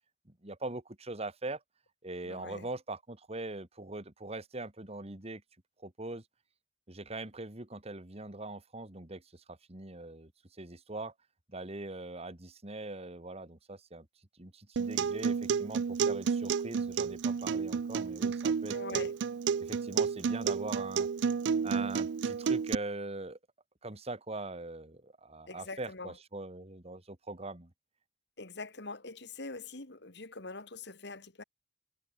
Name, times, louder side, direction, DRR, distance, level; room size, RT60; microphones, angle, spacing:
voice 1, 0.3-1.6 2.0-5.4 5.8-6.2 6.9-10.3 10.6-11.1 11.5-14.1 14.3-19.1 19.6-21.1 21.6-23.4 23.8-27.7, right 2 dB, 35° right, 2.1 m, -42 dB
voice 2, 2.2-2.7 18.7-19.2 25.5-26.2 28.4-31.4, left 3 dB, 65° left, 2.4 m, -44 dB
Acoustic guitar, 14.8-22.7, right 6 dB, 70° right, 0.4 m, -31 dB
head